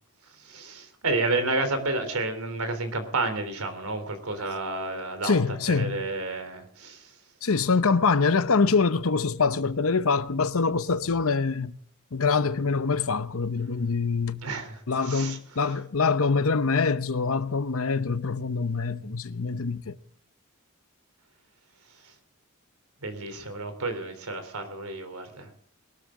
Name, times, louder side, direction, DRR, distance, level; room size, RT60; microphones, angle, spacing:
voice 1, 0.4-7.1 14.4-15.4 15.7-15.8 22.0-22.1 23.0-25.5, right 2 dB, 85° right, 3.5 m, -31 dB
voice 2, 5.2-6.0 7.4-11.8 12.1-14.5 14.9-20.0, left 4 dB, 75° left, 0.8 m, -24 dB
21.5 x 13.0 x 3.7 m
head